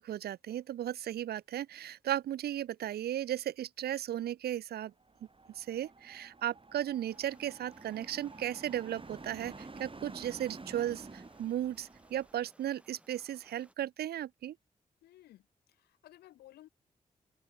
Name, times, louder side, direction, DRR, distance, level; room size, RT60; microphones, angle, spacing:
voice 1, 0.0-4.9 5.5-14.6, right 11 dB, 80° right, 1.0 m, -36 dB
sound 1, 5.0-12.4, right 3 dB, 35° right, 3.6 m, -50 dB
sound 2, 7.1-13.7, right 1 dB, 5° right, 4.4 m, -64 dB
voice 2, 15.0-15.4 15.7-16.7, left 14 dB, 90° left, 1.3 m, -56 dB
open air
supercardioid pair, 40°, 16 cm